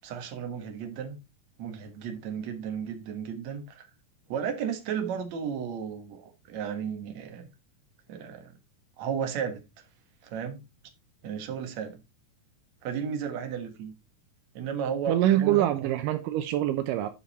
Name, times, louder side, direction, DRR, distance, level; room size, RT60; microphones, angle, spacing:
voice 1, 0.0-1.2 1.6-3.9 4.3-7.5 8.1-8.5 9.0-9.6 10.2-10.6 11.2-12.0 12.8-13.9 14.5-15.9, right 7 dB, 60° right, 2.5 m, -34 dB
voice 2, 15.1-17.1, right 13 dB, 80° right, 2.3 m, -24 dB
10.0 x 5.1 x 4.1 m
omnidirectional pair, 3.9 m